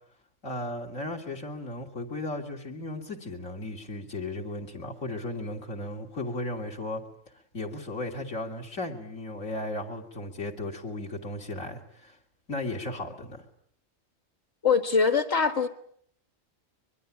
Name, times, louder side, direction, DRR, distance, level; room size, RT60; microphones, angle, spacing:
voice 1, 0.4-7.0 7.5-12.2 12.5-13.4, left 2 dB, 80° left, 3.5 m, -35 dB
voice 2, 14.6-15.7, left 5 dB, 55° left, 1.9 m, -23 dB
23.5 x 22.5 x 8.7 m
omnidirectional pair, 1.4 m